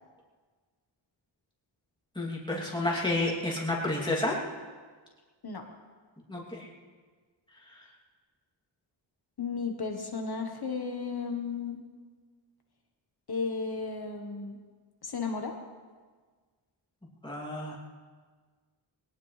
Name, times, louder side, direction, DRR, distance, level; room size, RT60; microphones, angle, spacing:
voice 1, 2.1-4.4 6.3-6.7 17.2-17.8, left 2 dB, 10° left, -4 dB, 2.8 m, -30 dB
voice 2, 9.4-11.8 13.3-14.6 15.0-15.6, left 5 dB, 50° left, 3 dB, 1.3 m, -34 dB
21.5 x 18.5 x 3.3 m, 1.5 s
wide cardioid pair, 170°, 48 cm